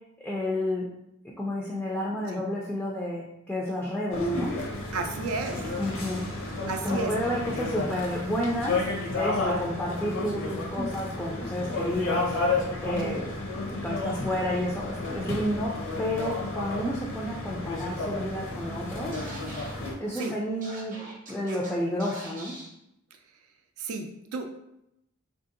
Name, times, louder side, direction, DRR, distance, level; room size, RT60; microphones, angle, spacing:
voice 1, 0.2-0.9 1.4-4.5 5.8-6.2 6.8-8.9 9.1-13.2 13.7-15.7 16.0-19.2 19.8-21.0 21.3-22.5, left 1 dB, 5° left, -5 dB, 0.3 m, -30 dB
sound 1, 4.1-19.9, left 2 dB, 65° left, 0.6 m, -32 dB
voice 2, 4.9-5.6 6.7-7.1 13.0-13.2 20.2-20.3 23.8-24.6, right 4 dB, 90° right, 6 dB, 0.4 m, -32 dB
sound 2, 5.4-8.8 10.3-10.4, equal, 80° left, 1.0 m, -47 dB
Scratching (performance technique), 19.1-19.7 20.2-20.3 20.6-21.7 22.0-22.7, right 2 dB, 40° right, 0.7 m, -43 dB
3.4 x 2.6 x 2.5 m, 0.82 s
head